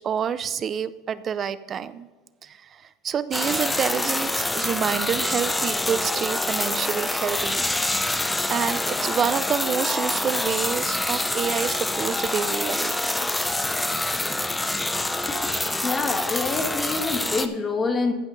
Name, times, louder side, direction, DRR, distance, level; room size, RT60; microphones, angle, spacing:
voice 1, 0.0-2.1 2.4-7.6 7.9-8.0 8.5-13.0, right 8 dB, 30° right, 15 dB, 0.5 m, -28 dB
sound 1, 3.3-17.5, left 2 dB, 10° left, 0.6 m, -26 dB
voice 2, 15.8-18.1, left 4 dB, 25° left, 5 dB, 1.5 m, -26 dB
15.0 x 5.6 x 4.0 m, 1.3 s
supercardioid pair, 125°, 0 cm